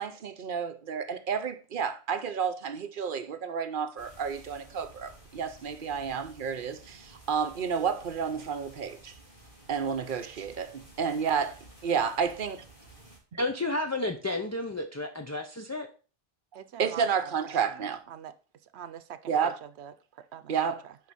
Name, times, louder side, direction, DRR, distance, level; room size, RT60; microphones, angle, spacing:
voice 1, 0.0-9.1 9.7-12.6 16.8-18.0 19.3-19.6 20.5-20.8, right 6 dB, 55° right, 0.9 m, -31 dB
sound 1, 4.0-13.2, right 1 dB, 55° left, 3.0 m, -53 dB
voice 2, 13.4-15.9, left 2 dB, 20° left, 0.5 m, -31 dB
voice 3, 16.5-18.4 18.6-21.0, right 9 dB, 90° right, 0.9 m, -45 dB
11.0 x 4.4 x 4.1 m
omnidirectional pair, 1.1 m